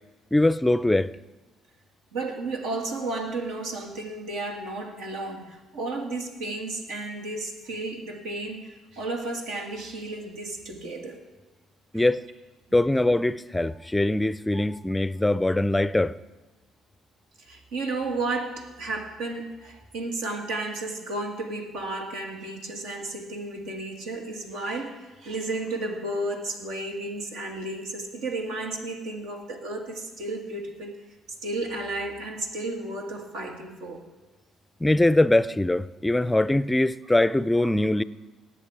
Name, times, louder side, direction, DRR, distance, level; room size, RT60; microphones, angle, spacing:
voice 1, 0.3-1.1 11.9-12.2 12.7-16.2 34.8-38.0, left 1 dB, 10° left, 0.5 m, -22 dB
voice 2, 2.1-11.2 11.9-12.1 14.5-14.7 17.4-31.0 31.4-34.0 37.6-37.7, right 2 dB, 80° right, 2.1 m, -33 dB
18.5 x 7.3 x 4.9 m
supercardioid pair, 70°, 0 cm